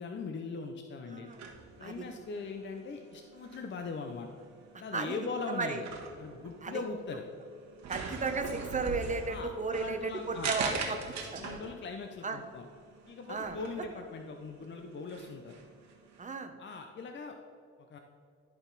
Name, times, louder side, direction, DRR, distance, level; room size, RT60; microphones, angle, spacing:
voice 1, 0.0-1.3 1.8-4.3 4.8-5.9 6.2-7.3 9.3-10.5 11.4-12.7 13.1-15.6 16.6-17.4 17.9-18.0, left 4 dB, 40° left, 4 dB, 0.6 m, -40 dB
voice 2, 1.1-1.4 1.8-2.0 4.9-5.2 5.5-5.8 6.6-6.8 7.9-11.0 11.3-11.6 12.2-12.4 13.3-13.6 16.2-16.6, right 4 dB, 25° right, 6 dB, 0.8 m, -34 dB
sound 1, 1.3-16.2, right 5 dB, 65° right, 1.4 m, -42 dB
12.0 x 4.1 x 4.0 m, 2.4 s
cardioid pair, 90°, 30 cm